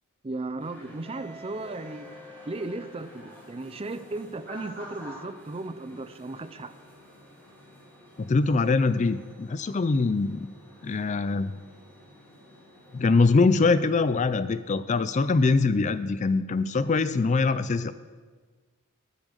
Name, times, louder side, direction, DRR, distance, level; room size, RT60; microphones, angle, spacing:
voice 1, 0.2-2.1 2.5-6.7, right 2 dB, 25° right, 12 dB, 0.5 m, -36 dB
sound 1, 0.6-13.5, left 1 dB, 10° left, 2.9 m, -49 dB
voice 2, 8.3-10.5 10.8-11.6 12.9-17.9, left 3 dB, 30° left, 14 dB, 0.4 m, -23 dB
14.0 x 7.1 x 6.6 m, 1.4 s
head